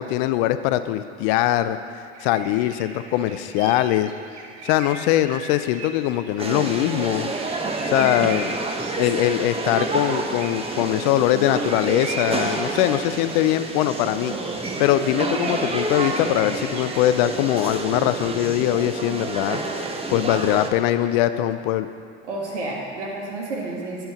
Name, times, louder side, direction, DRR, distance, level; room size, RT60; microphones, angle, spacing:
voice 1, 0.0-1.8 2.2-4.1 4.6-7.3 7.9-8.5 9.0-14.3 14.8-19.6 20.1-21.9, left 13 dB, 55° left, 12 dB, 0.5 m, -22 dB
sound 1, 2.1-17.1, right 3 dB, 50° right, 1.0 m, -39 dB
sound 2, 6.4-20.7, right 3 dB, 15° right, 0.8 m, -29 dB
voice 2, 22.2-24.1, right 2 dB, 80° right, -2 dB, 1.6 m, -30 dB
9.5 x 4.5 x 5.7 m, 2.5 s
hypercardioid pair, 80°, 34 cm